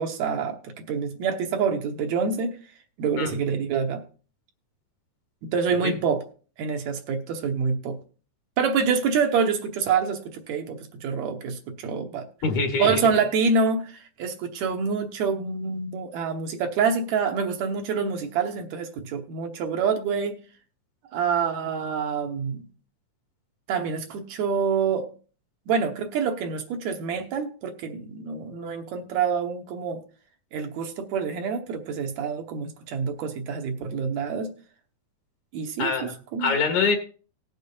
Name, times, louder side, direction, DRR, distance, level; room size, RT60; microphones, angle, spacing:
voice 1, 0.0-2.6 3.0-4.0 5.4-6.2 6.6-8.0 8.6-12.3 12.8-20.4 21.1-22.7 23.7-25.1 25.7-30.0 30.5-34.5 35.5-36.5, right 5 dB, 70° right, 5 dB, 2.2 m, -26 dB
voice 2, 12.4-13.0 35.8-36.1 36.4-37.0, left 4 dB, 70° left, 4 dB, 3.0 m, -24 dB
19.0 x 6.8 x 2.7 m, 0.39 s
omnidirectional pair, 3.4 m